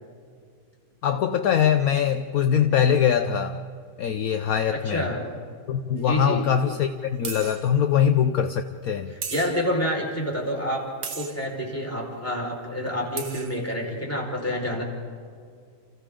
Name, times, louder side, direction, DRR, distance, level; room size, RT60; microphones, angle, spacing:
voice 1, 1.0-3.6 4.0-5.0 5.7-9.1, left 8 dB, 65° left, 8 dB, 1.2 m, -22 dB
voice 2, 4.8-5.2 6.0-6.4 9.1-10.9 11.1-14.8, equal, 10° left, -2 dB, 5.0 m, -28 dB
sound 1, 6.0-6.1 7.2-7.7 9.2-9.8 11.0-11.5 12.9-13.0 13.2-13.6, right 6 dB, 70° right, 1.9 m, -35 dB
30.0 x 29.0 x 3.8 m, 2.2 s
omnidirectional pair, 1.8 m